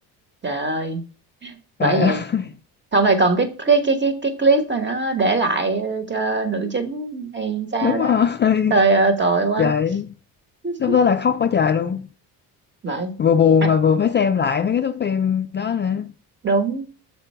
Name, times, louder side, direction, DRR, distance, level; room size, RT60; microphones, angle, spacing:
voice 1, 0.4-1.0 1.4-2.2 2.9-8.2 8.7-9.7 10.6-11.0 12.8-13.1 13.6-13.7 16.4-16.8, right 3 dB, 25° right, 1.3 m, -21 dB
voice 2, 1.8-2.5 7.8-8.8 9.6-10.1 10.8-12.1 13.2-16.1, left 7 dB, 25° left, 0.3 m, -19 dB
6.6 x 4.6 x 4.4 m
supercardioid pair, 70°, 44 cm